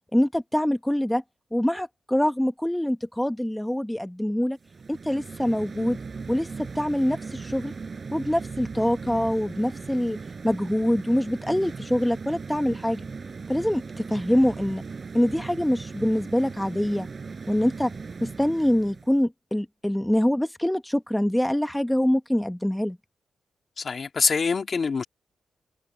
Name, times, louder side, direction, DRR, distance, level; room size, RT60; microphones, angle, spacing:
voice 1, 0.1-1.2 1.5-4.6 4.9-6.0 6.3-7.7 8.1-10.2 10.4-13.1 13.5-14.8 15.1-17.1 17.5-17.9 18.2-23.0, left 1 dB, 5° left, 1.2 m, -24 dB
sound 1, 4.6-19.2, right 4 dB, 45° right, 6.5 m, -38 dB
voice 2, 23.8-25.0, left 5 dB, 50° left, 1.9 m, -25 dB
cardioid pair, 85°, 0 cm